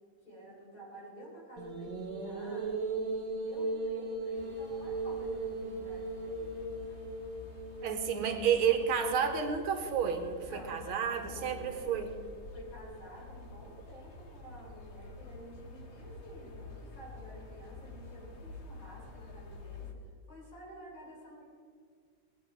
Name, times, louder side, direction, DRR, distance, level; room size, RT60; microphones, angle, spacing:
voice 1, 0.2-2.7 3.1-6.6 10.4-12.0 12.5-19.9 20.3-21.5, right 1 dB, 60° left, -4 dB, 5.0 m, -50 dB
sound 1, 1.6-9.0, right 2 dB, 55° right, 1.7 m, -37 dB
sound 2, 4.3-19.9, left 3 dB, 40° left, 1.0 m, -49 dB
voice 2, 7.8-12.1, right 7 dB, 75° right, 6 dB, 1.9 m, -30 dB
19.0 x 9.7 x 4.6 m, 2.2 s
omnidirectional pair, 2.4 m